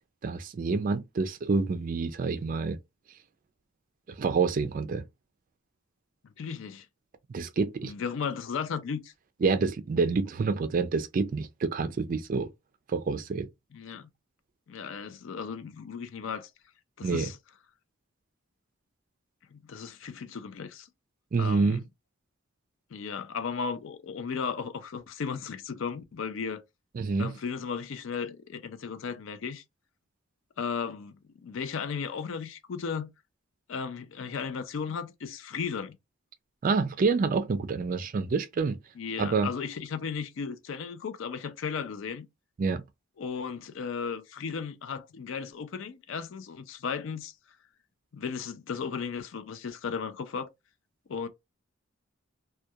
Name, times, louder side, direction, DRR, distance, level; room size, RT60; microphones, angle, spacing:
voice 1, 0.2-2.8 4.2-5.0 7.3-7.9 9.4-12.5 12.9-13.5 17.0-17.3 21.3-21.8 26.9-27.3 36.6-38.8 39.2-39.5 42.6-42.8, right 4 dB, 40° right, 0.3 m, -27 dB
voice 2, 6.4-6.9 7.8-9.1 13.7-14.1 14.7-16.5 17.0-17.4 19.5-20.9 21.4-21.8 22.9-26.6 27.2-29.6 30.6-31.1 31.4-33.1 33.7-36.0 39.0-42.3 43.2-47.3 48.1-50.5 51.1-51.3, left 6 dB, 65° left, 0.4 m, -35 dB
2.3 x 2.2 x 2.7 m
head